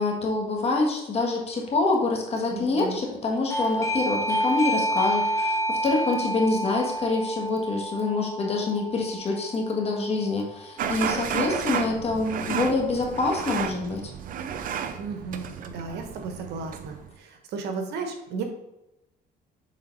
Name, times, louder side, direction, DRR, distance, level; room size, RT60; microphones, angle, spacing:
voice 1, 0.0-14.1, left 3 dB, 35° left, 0 dB, 1.5 m, -26 dB
voice 2, 2.5-3.0 15.0-18.4, right 4 dB, 80° right, 5 dB, 1.1 m, -34 dB
Doorbell, 3.5-10.0, right 1 dB, 20° left, 1.2 m, -29 dB
sound 1, 10.8-17.1, right 7 dB, 55° right, 0.6 m, -32 dB
6.5 x 3.9 x 4.0 m, 0.92 s
cardioid pair, 110°, 17 cm